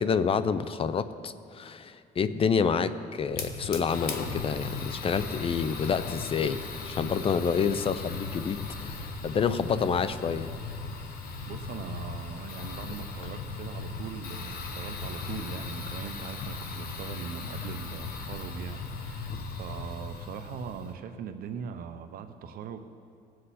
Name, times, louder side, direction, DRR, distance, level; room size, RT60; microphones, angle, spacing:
voice 1, 0.0-10.5, left 6 dB, 35° left, 14 dB, 0.5 m, -28 dB
Fire, 3.3-20.9, left 4 dB, 65° left, 1.3 m, -37 dB
voice 2, 11.5-18.8 19.0-22.8, right 7 dB, 60° right, 8 dB, 0.7 m, -40 dB
19.5 x 7.8 x 4.2 m, 2.4 s
cardioid pair, 110°, 17 cm